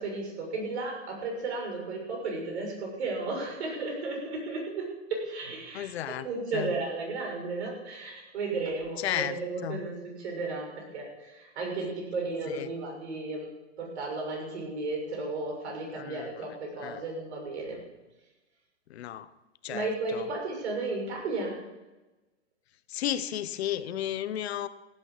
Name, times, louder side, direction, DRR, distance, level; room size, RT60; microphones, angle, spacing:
voice 1, 0.0-13.5 13.8-17.8 19.7-21.6, right 3 dB, 65° right, 0 dB, 6.6 m, -34 dB
voice 2, 5.7-6.3 6.5-6.7 9.0-9.8 12.5-12.7 16.0-16.3 16.8-17.0 18.9-19.3 19.6-20.2 22.9-24.7, left 11 dB, 60° left, 14 dB, 0.9 m, -33 dB
15.5 x 9.1 x 7.3 m, 1.1 s
hypercardioid pair, 145°, 36 cm